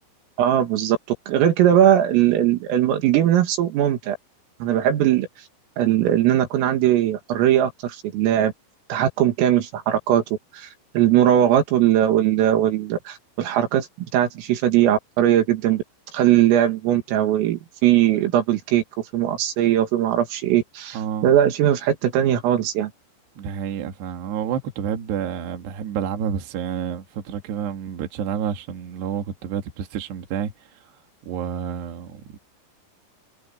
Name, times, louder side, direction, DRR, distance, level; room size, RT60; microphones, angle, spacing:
voice 1, 0.4-1.0 1.3-4.2 4.6-5.3 5.8-8.5 8.9-10.2 10.5-10.7 10.9-13.9 14.1-15.8 16.1-18.8 19.1-22.9, right 11 dB, 85° right, 5.0 m, -19 dB
voice 2, 20.9-21.3 23.4-30.8 31.2-32.4, right 8 dB, 60° right, 4.1 m, -29 dB
omnidirectional pair, 5.8 m